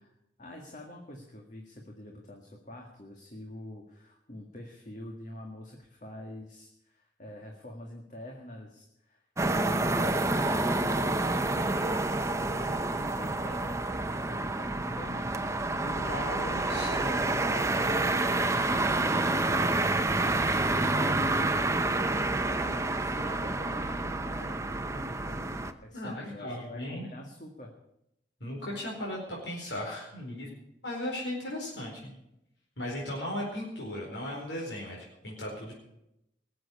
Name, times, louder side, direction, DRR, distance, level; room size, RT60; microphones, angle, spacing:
voice 1, 0.4-25.5 25.8-27.7, left 1 dB, 45° left, 1 dB, 1.9 m, -45 dB
sound 1, 9.4-25.7, right 2 dB, 15° right, 0.7 m, -28 dB
voice 2, 15.9-17.2 25.9-27.1 28.4-30.5 30.8-32.1 32.8-35.0 35.2-35.7, left 1 dB, 75° left, -3 dB, 4.6 m, -37 dB
19.5 x 7.7 x 8.5 m, 0.84 s
head